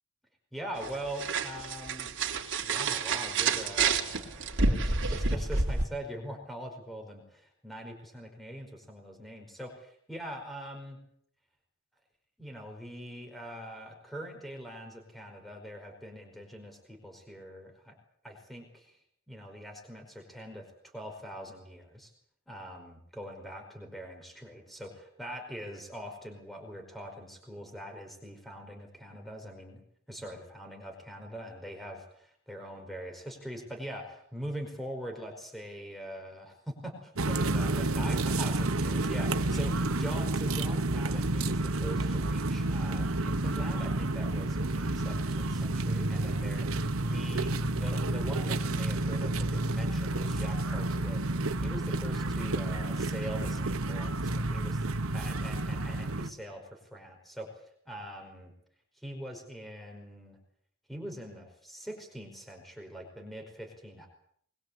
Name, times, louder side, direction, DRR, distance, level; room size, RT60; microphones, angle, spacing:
voice 1, 0.5-2.1 2.6-11.0 12.4-18.0 18.2-19.0 19.3-20.7 20.9-22.1 22.5-29.8 30.1-39.7 40.0-54.9 55.1-58.5 59.0-60.4 60.9-64.1, equal, ahead, 3 dB, 5.2 m, -43 dB
sound 1, 0.8-5.8, right 4 dB, 60° right, 3.2 m, -29 dB
sound 2, 37.2-56.3, right 2 dB, 80° right, 1.4 m, -30 dB
22.5 x 22.0 x 8.3 m, 0.65 s
head